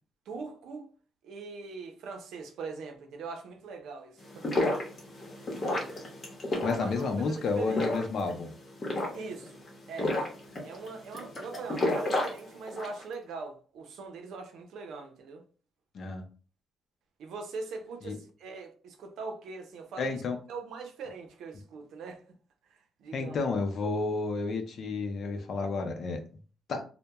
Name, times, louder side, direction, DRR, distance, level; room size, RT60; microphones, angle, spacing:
voice 1, 0.3-0.9 1.2-4.8 5.6-5.9 6.7-7.8 9.1-9.6 9.9-10.2 10.6-15.4 17.2-20.2 20.5-22.2 22.6-23.4, right 4 dB, 80° right, 0.6 m, -41 dB
sound 1, 4.2-13.0, left 2 dB, 40° left, 0.9 m, -32 dB
voice 2, 6.6-8.5 15.9-16.2 18.0-18.1 20.0-20.4 23.1-26.2 26.7-26.8, left 4 dB, 55° left, 0.5 m, -31 dB
2.2 x 2.1 x 2.8 m
cardioid pair, 90°, 0 cm